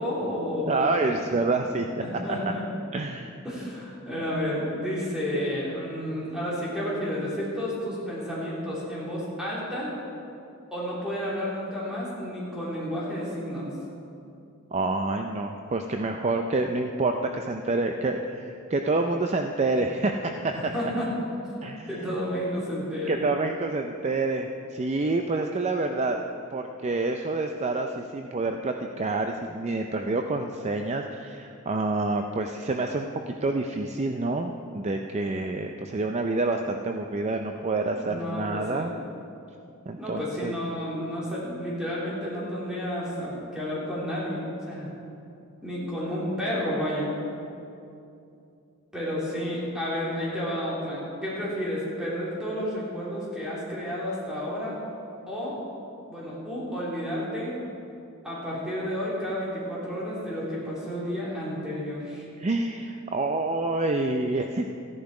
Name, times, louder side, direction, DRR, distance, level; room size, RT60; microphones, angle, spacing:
voice 1, 0.0-1.3 2.0-2.6 3.4-9.9 10.7-13.7 20.5-21.1 21.9-23.2 37.9-38.9 40.0-44.9 45.6-47.1 48.9-54.8 55.3-55.6 56.1-57.5 58.2-62.3, equal, 5° right, -7 dB, 3.4 m, -31 dB
voice 2, 0.7-1.9 2.1-2.4 2.9-3.3 14.7-20.9 21.6-22.1 23.1-38.9 39.9-40.5 62.4-64.7, right 2 dB, 30° right, 5 dB, 0.4 m, -28 dB
14.5 x 10.5 x 4.8 m, 2.7 s
head